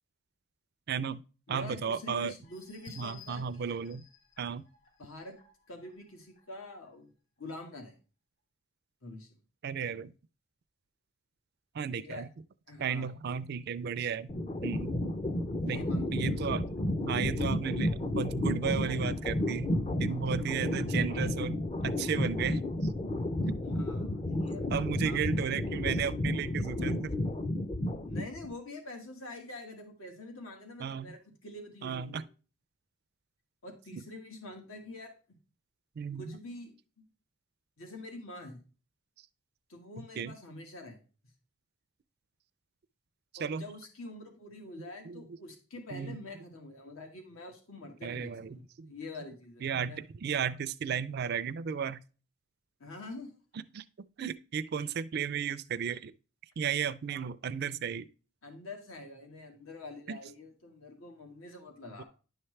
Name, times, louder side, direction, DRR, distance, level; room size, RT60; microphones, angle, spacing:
voice 1, 0.9-1.2 1.5-2.3 3.0-4.0 4.4-4.6 9.6-10.1 11.7-12.3 12.8-14.3 14.6-14.9 15.7-15.8 16.1-16.7 17.0-19.7 20.0-22.6 24.7-27.1 30.8-31.1 31.8-32.2 33.9-34.0 36.0-36.4 40.0-40.3 43.4-43.6 44.8-45.2 45.9-46.2 48.0-48.9 49.6-52.0 53.7-53.8 54.2-56.1 56.6-58.1 60.1-60.2 62.0-62.1, right 7 dB, 50° right, 0.4 m, -34 dB
voice 2, 1.5-3.7 5.0-5.4 5.7-7.1 7.4-7.9 9.0-9.3 12.0-12.2 12.7-13.1 15.6-16.4 23.7-25.2 25.4-25.5 28.0-32.2 33.6-35.4 36.2-37.0 37.8-38.6 39.7-41.0 43.4-50.0 52.8-53.3 58.4-62.0, left 2 dB, 80° left, 1.6 m, -46 dB
sound 1, 2.4-6.9 7.4-7.5 7.9-8.0, left 7 dB, 60° left, 3.6 m, -57 dB
sound 2, 14.3-28.5, left 1 dB, 30° left, 0.5 m, -32 dB
10.5 x 5.7 x 3.2 m
head